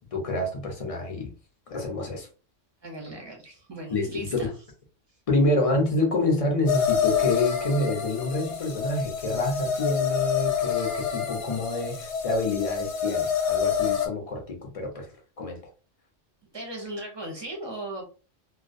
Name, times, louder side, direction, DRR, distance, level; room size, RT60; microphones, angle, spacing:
voice 1, 0.1-1.3 1.7-2.3 3.9-4.3 5.3-15.1 15.4-15.6, left 2 dB, 40° left, 0.5 m, -27 dB
voice 2, 2.8-4.5 16.5-18.0, right 1 dB, 30° right, 0.5 m, -37 dB
sound 1, 6.7-14.1, left 7 dB, 70° left, 0.9 m, -27 dB
2.3 x 2.1 x 2.5 m
omnidirectional pair, 1.3 m